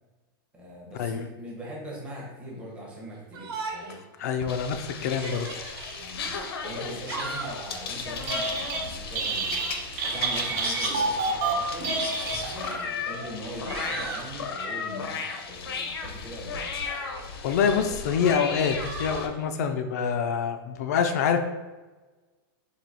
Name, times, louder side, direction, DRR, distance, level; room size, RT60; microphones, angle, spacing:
voice 1, 0.5-4.0 6.0-9.7 10.0-11.9 12.4-16.7, equal, 10° right, -4 dB, 0.8 m, -41 dB
Yell, 3.3-4.0 4.4-4.5 5.1-6.0 6.8-7.7 9.4-9.9 11.0-11.1 12.0-12.8 13.3-14.3 16.9-17.6 18.8-19.3, right 4 dB, 85° right, 1.0 m, -38 dB
voice 2, 4.2-5.6 16.9-17.1 17.4-21.4, left 7 dB, 45° left, 8 dB, 0.4 m, -26 dB
sound 1, 4.4-19.3, left 5 dB, 85° left, 0.7 m, -35 dB
Telephone, 8.1-8.8 9.1-12.8, right 3 dB, 45° right, 0.9 m, -28 dB
4.6 x 2.8 x 4.0 m, 1.2 s
supercardioid pair, 170°, 12 cm